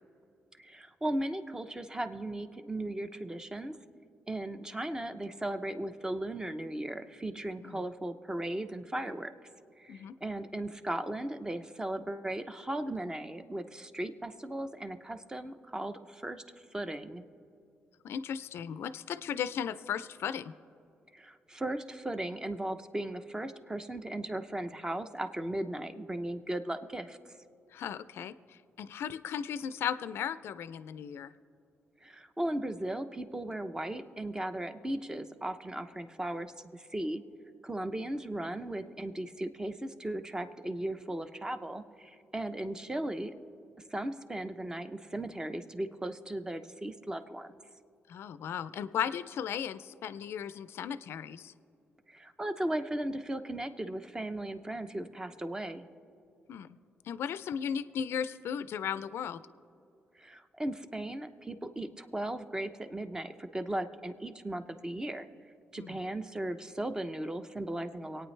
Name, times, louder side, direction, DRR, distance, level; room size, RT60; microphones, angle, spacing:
voice 1, 0.6-3.8 4.3-9.3 9.8-16.4 16.7-17.2 21.1-27.2 32.0-37.2 37.6-43.3 43.9-47.6 52.1-55.8 60.2-65.3 65.7-68.3, right 1 dB, 15° right, 9 dB, 0.8 m, -37 dB
voice 2, 18.0-20.5 27.7-31.3 48.1-51.5 56.5-56.8 57.1-59.4 65.8-66.0, left 8 dB, 75° left, 14 dB, 0.4 m, -36 dB
24.0 x 9.1 x 3.3 m, 2.7 s
cardioid pair, 70°, 4 cm